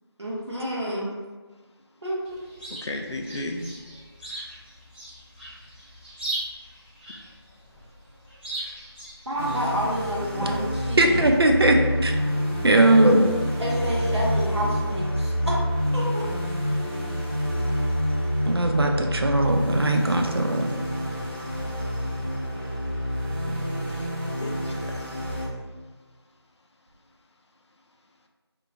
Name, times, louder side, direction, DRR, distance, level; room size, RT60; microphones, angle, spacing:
voice 1, 0.2-1.1 2.0-2.1 9.3-11.3 13.6-15.6 15.9-16.2, equal, 80° right, -5 dB, 1.0 m, -29 dB
Chirp tweet, 2.2-9.9, right 2 dB, 25° right, 0.9 m, -39 dB
voice 2, 2.7-3.7 22.5-22.7 23.9-24.1 24.4-25.7, left 2 dB, 85° left, 2 dB, 0.4 m, -36 dB
sound 1, 9.4-25.5, equal, 25° left, 0.5 m, -28 dB
voice 3, 11.0-12.1 12.6-13.3 18.5-20.7, right 1 dB, 60° right, 3 dB, 0.4 m, -19 dB
2.8 x 2.0 x 2.7 m, 1.4 s
figure-of-eight pair, 175°, 14 cm